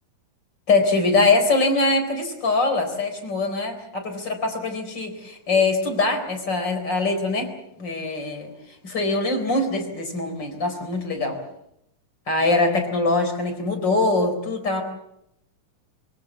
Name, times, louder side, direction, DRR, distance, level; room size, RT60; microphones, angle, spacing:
voice 1, 0.7-8.5 8.8-11.4 12.3-14.8, left 3 dB, 35° left, 5 dB, 4.6 m, -23 dB
24.5 x 24.5 x 7.4 m, 0.81 s
omnidirectional pair, 3.6 m